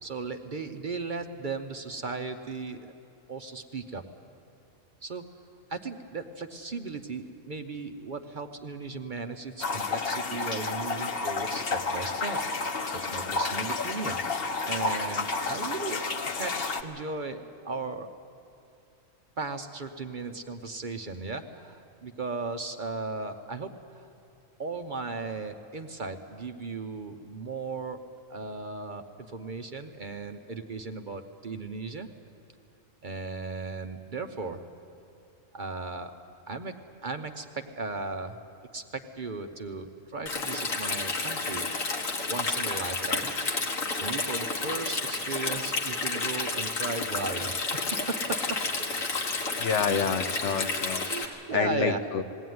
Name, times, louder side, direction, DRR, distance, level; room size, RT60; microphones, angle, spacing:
voice 1, 0.0-2.9 3.3-4.1 5.0-5.3 5.7-12.4 12.9-14.2 14.6-18.1 19.4-24.1 24.6-28.0 28.3-32.1 33.0-34.6 35.5-36.1 36.5-38.4 38.7-41.6 42.3-43.3 44.0-48.6 50.5-52.0, right 3 dB, 45° right, 6 dB, 0.8 m, -36 dB
sound 1, 9.6-16.8, left 4 dB, 50° left, 1.1 m, -31 dB
Stream, 40.3-51.3, left 3 dB, 90° left, 2.0 m, -31 dB
voice 2, 49.6-51.1 51.5-52.2, left 6 dB, 65° left, 9 dB, 1.1 m, -28 dB
20.5 x 16.5 x 9.4 m, 2.7 s
omnidirectional pair, 1.3 m